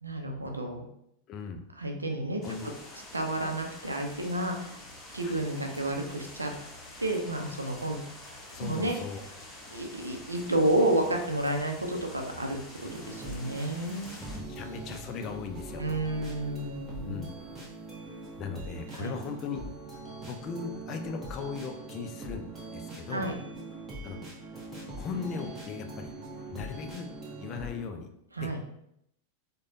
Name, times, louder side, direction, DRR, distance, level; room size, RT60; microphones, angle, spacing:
voice 1, 0.0-0.9 1.8-2.4 3.1-4.7 5.1-6.5 7.0-8.0 8.6-9.0 9.7-14.3 15.8-17.2 18.9-19.2 23.1-23.4 28.3-28.6, right 1 dB, 80° right, 3 dB, 0.5 m, -30 dB
voice 2, 1.3-1.6 2.4-2.7 5.2-5.5 8.5-9.3 14.1-15.8 17.0-17.3 18.4-19.6 20.2-23.3 24.0-24.2 25.0-26.1 26.5-27.1 27.4-28.1 28.4-28.5, left 5 dB, 35° left, 6 dB, 0.4 m, -38 dB
sound 1, 2.4-14.4, left 1 dB, 15° left, 0.9 m, -47 dB
sound 2, 12.8-27.8, right 2 dB, 15° right, 1.1 m, -42 dB
4.8 x 2.2 x 2.6 m, 0.76 s
figure-of-eight pair, 90°, 0 cm